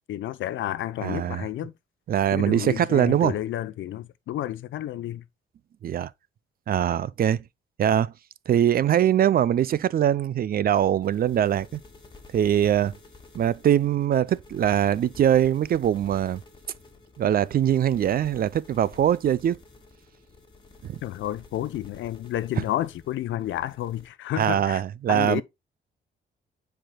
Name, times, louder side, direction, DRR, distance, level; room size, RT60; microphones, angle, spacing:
voice 1, 0.1-1.7 2.3-5.2 21.0-24.8 25.1-25.4, left 13 dB, 75° left, 0.7 m, -30 dB
voice 2, 1.0-1.5 2.1-3.3 5.8-6.1 6.7-7.4 7.8-8.1 8.5-11.8 12.3-13.0 13.3-16.4 17.2-19.6 20.8-21.0 24.4-25.4, right 10 dB, 50° right, 0.4 m, -22 dB
sound 1, 10.7-24.1, left 3 dB, 25° left, 2.4 m, -51 dB
10.0 x 4.8 x 2.2 m
cardioid pair, 90°, 20 cm